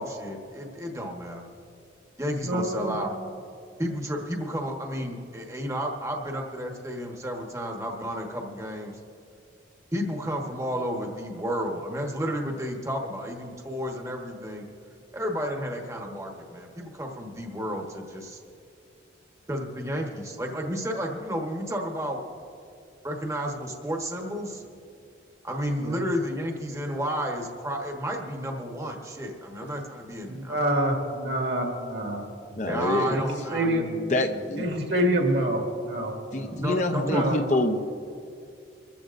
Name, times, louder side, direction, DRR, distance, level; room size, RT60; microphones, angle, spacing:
voice 1, 0.0-1.5 2.2-3.1 3.8-9.0 9.9-14.7 15.1-18.4 19.5-22.2 23.0-24.6 25.4-30.7 32.7-34.4 36.5-37.6, equal, 15° right, 1 dB, 1.2 m, -32 dB
voice 2, 2.3-3.0 25.8-26.0 30.3-32.7 33.1-33.8 34.5-36.5 37.0-37.4, right 1 dB, 60° right, 0 dB, 2.1 m, -27 dB
voice 3, 32.6-33.2 34.1-34.7 36.3-37.8, left 1 dB, 40° left, 6 dB, 0.7 m, -26 dB
25.0 x 14.0 x 2.6 m, 2.5 s
head